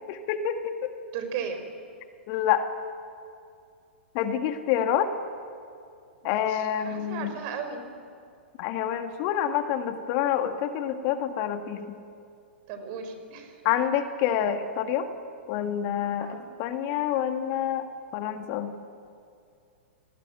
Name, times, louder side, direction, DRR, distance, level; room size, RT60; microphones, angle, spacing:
voice 1, 0.1-0.9 2.3-2.6 4.1-5.1 6.2-7.3 8.6-11.9 13.7-15.1 15.5-17.9 18.1-18.7, left 10 dB, 40° left, 7 dB, 1.7 m, -27 dB
voice 2, 1.1-1.6 6.2-7.9 12.7-13.6 16.2-16.5, right 6 dB, 40° right, 7 dB, 4.3 m, -36 dB
29.0 x 19.0 x 9.0 m, 2.4 s
figure-of-eight pair, 110°, 6 cm